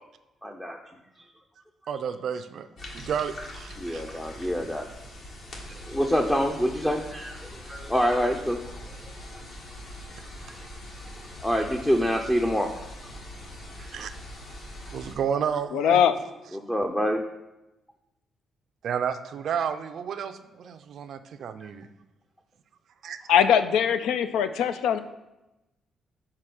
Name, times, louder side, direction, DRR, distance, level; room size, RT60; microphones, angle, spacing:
voice 1, 0.4-0.8 3.8-4.9 5.7-8.6 10.5-10.6 11.4-12.7 16.5-17.2, equal, 10° left, 2 dB, 0.5 m, -26 dB
voice 2, 1.9-2.7 2.9-4.0 13.8-14.1 14.9-16.0 18.8-21.9 23.0-23.2, right 7 dB, 65° right, 10 dB, 0.4 m, -31 dB
sound 1, 2.8-15.1, left 1 dB, 55° left, 1.5 m, -42 dB
voice 3, 15.7-16.1 23.3-25.0, left 8 dB, 90° left, 11 dB, 0.4 m, -21 dB
4.9 x 4.4 x 5.9 m, 0.98 s
cardioid pair, 90°, 0 cm